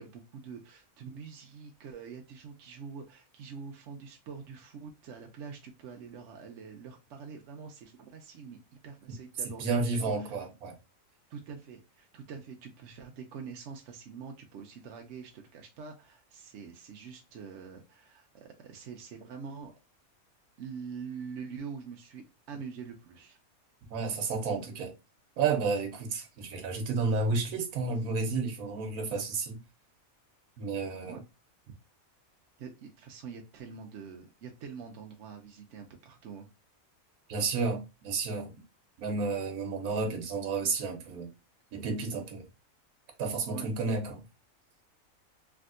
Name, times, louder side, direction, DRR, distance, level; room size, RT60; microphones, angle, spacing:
voice 1, 0.0-10.4 11.3-19.7 20.6-23.4 31.0-31.2 31.7-31.8 32.6-36.5 43.5-43.7, right 6 dB, 65° right, 0.8 m, -45 dB
voice 2, 9.6-10.7 23.9-24.9 25.4-29.6 30.6-31.2 37.3-38.5 39.0-41.3 41.7-42.4 43.2-44.2, right 4 dB, 85° right, 1.2 m, -31 dB
3.4 x 2.6 x 2.4 m
omnidirectional pair, 1.5 m